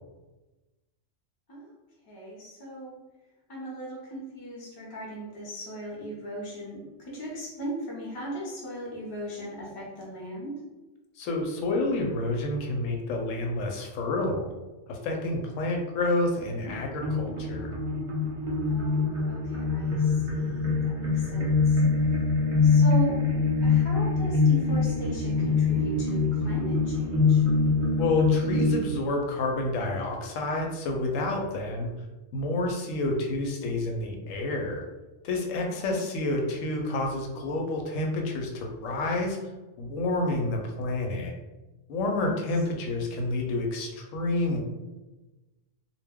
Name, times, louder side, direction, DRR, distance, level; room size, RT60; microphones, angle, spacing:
voice 1, 2.1-3.0 3.5-10.6 18.6-21.8 22.6-23.4 23.6-27.5 35.6-36.1 42.2-42.4, right 1 dB, 35° left, -3 dB, 0.3 m, -38 dB
voice 2, 11.2-14.5 14.9-17.8 28.0-31.9 32.3-34.8 35.2-39.4 39.8-41.3 41.9-44.6, left 2 dB, 80° left, 1 dB, 0.9 m, -29 dB
sound 1, 16.7-28.7, left 4 dB, 50° right, 0.6 m, -24 dB
2.2 x 2.2 x 3.4 m, 1.1 s
omnidirectional pair, 1.3 m